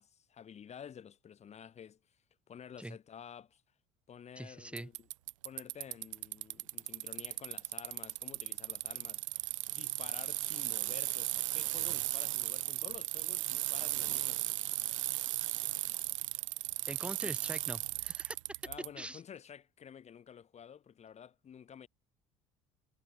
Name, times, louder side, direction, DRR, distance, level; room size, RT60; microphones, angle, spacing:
voice 1, 0.0-2.0 2.5-3.6 4.1-5.1 5.4-9.4 9.7-14.6 17.2-17.3 18.6-21.9, left 8 dB, 45° left, 4.2 m, -51 dB
voice 2, 4.4-4.9 16.9-18.4 19.0-19.2, right 1 dB, 5° right, 5.6 m, -43 dB
Bicycle, 4.8-18.9, right 17 dB, 90° right, 0.6 m, -36 dB
hypercardioid pair, 70°, 16 cm